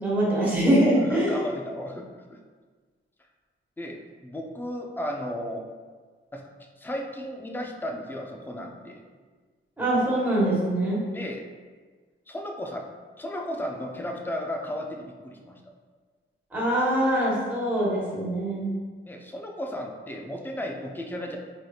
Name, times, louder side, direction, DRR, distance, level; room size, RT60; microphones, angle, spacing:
voice 1, 0.0-1.4 9.8-11.0 16.5-18.7, right 1 dB, 10° right, -8 dB, 1.2 m, -23 dB
voice 2, 1.0-2.4 3.8-5.7 6.3-6.4 6.8-9.0 11.1-11.4 12.3-12.9 13.2-15.6 19.0-21.4, left 1 dB, 10° left, 2 dB, 0.4 m, -34 dB
4.8 x 2.9 x 2.3 m, 1.5 s
wide cardioid pair, 100°, 21 cm